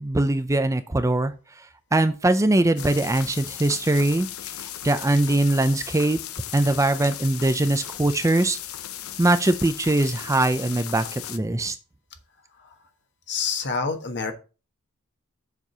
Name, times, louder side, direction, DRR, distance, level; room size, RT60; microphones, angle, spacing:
voice 1, 0.0-1.3 1.9-4.3 4.6-6.2 6.5-8.6 9.2-11.8, right 2 dB, 15° right, 10 dB, 0.5 m, -21 dB
sound 1, 2.8-11.4, left 11 dB, 70° left, 0.7 m, -36 dB
voice 2, 13.3-14.3, left 5 dB, 55° left, 6 dB, 1.4 m, -28 dB
7.3 x 4.6 x 6.6 m, 0.33 s
head